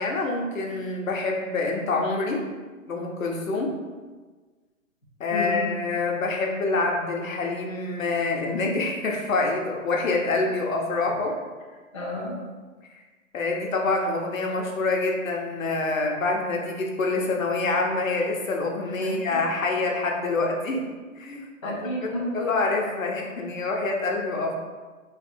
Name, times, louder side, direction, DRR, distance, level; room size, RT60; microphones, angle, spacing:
voice 1, 0.0-2.4 2.9-3.8 5.2-11.4 12.9-13.0 13.3-20.8 21.2-21.7 22.3-24.5, left 3 dB, 70° left, 0 dB, 0.9 m, -26 dB
voice 2, 5.3-5.6 11.9-12.4 19.0-19.4 21.6-22.5, left 1 dB, 25° left, -10 dB, 0.5 m, -31 dB
3.2 x 2.4 x 4.2 m, 1.4 s
hypercardioid pair, 175°, 41 cm